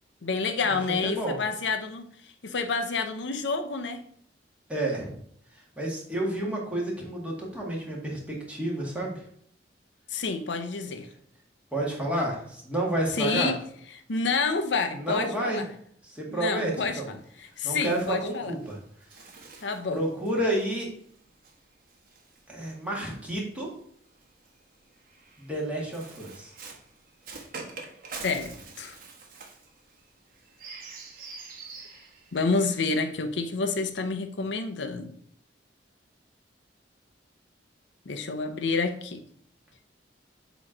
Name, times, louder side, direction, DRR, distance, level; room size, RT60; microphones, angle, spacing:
voice 1, 0.2-2.1 2.4-4.0 10.1-11.1 13.2-13.6 14.1-15.6 16.3-18.5 19.6-20.0 28.2-28.5 28.8-29.0 32.3-35.1 38.1-39.3, left 4 dB, 75° left, 6 dB, 0.6 m, -29 dB
voice 2, 1.0-1.4 4.7-5.2 5.5-9.3 11.7-13.5 14.9-15.6 16.0-17.1 17.6-18.8 19.9-20.9 22.5-23.7 25.4-26.5, right 1 dB, 5° right, -3 dB, 1.8 m, -30 dB
Bird, 16.6-23.1 24.1-32.9, right 4 dB, 50° right, 1.2 m, -46 dB
7.5 x 3.1 x 4.9 m, 0.63 s
head